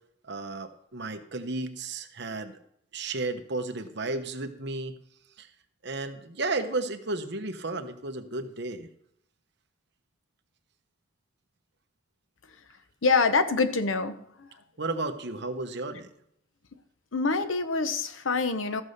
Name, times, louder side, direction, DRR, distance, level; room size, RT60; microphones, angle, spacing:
voice 1, 0.2-2.6 2.9-4.9 5.4-5.5 5.8-8.9 14.8-16.1, right 2 dB, 60° right, 7 dB, 1.1 m, -33 dB
voice 2, 13.0-14.5 17.1-18.8, left 4 dB, 90° left, 10 dB, 0.9 m, -25 dB
14.0 x 5.5 x 6.6 m, 0.73 s
head